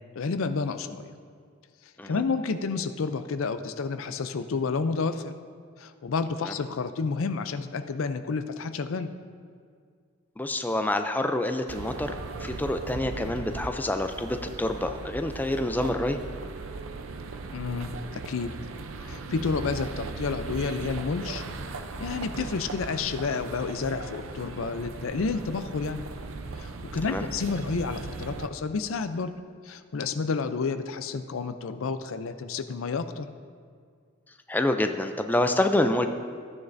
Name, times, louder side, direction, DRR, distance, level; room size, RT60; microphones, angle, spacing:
voice 1, 0.2-1.1 2.0-5.3 5.8-9.1 17.5-18.5 19.0-21.4 22.0-26.0 26.6-29.3 29.6-33.3, left 4 dB, 80° left, 10 dB, 0.5 m, -30 dB
voice 2, 10.4-12.2 12.4-16.2 27.1-27.2 34.5-36.1, left 1 dB, 10° left, 6 dB, 0.4 m, -27 dB
sound 1, 11.7-28.5, right 3 dB, 75° right, 0.6 m, -38 dB
14.0 x 9.4 x 2.6 m, 2.1 s
head